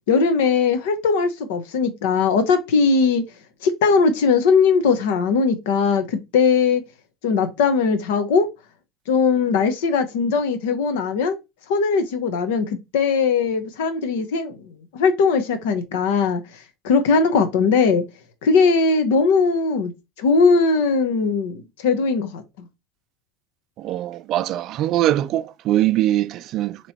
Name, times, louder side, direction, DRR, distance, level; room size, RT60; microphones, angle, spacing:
voice 1, 0.1-3.2 3.6-6.8 7.2-8.5 9.1-11.4 11.7-14.6 14.9-16.4 16.8-18.0 18.4-19.9 20.2-22.4, left 5 dB, 85° left, 0.9 m, -19 dB
voice 2, 23.8-26.8, right 13 dB, 55° right, 0.4 m, -22 dB
3.0 x 3.0 x 4.2 m
supercardioid pair, 100°, 0 cm